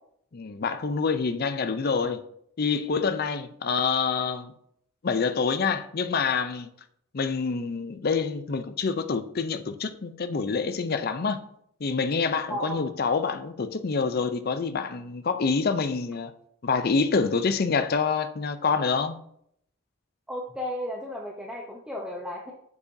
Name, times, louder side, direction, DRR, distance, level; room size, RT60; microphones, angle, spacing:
voice 1, 0.3-2.2 2.6-4.5 5.0-6.7 7.1-11.4 11.8-16.3 16.6-19.2, left 5 dB, 45° left, 0.5 m, -26 dB
voice 2, 12.5-12.8 20.3-22.5, equal, 5° right, 0.6 m, -34 dB
7.2 x 6.7 x 2.7 m
head